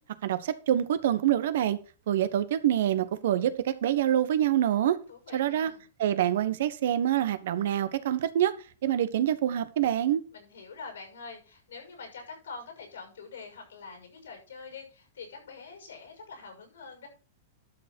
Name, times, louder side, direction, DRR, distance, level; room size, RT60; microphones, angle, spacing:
voice 1, 0.2-1.8 2.1-5.0 5.3-5.7 6.0-8.5 8.8-10.2, right 11 dB, 65° right, 1.1 m, -26 dB
voice 2, 5.1-5.8 10.3-17.1, left 4 dB, 75° left, 6.2 m, -45 dB
12.5 x 6.4 x 4.4 m
figure-of-eight pair, 100°, 0 cm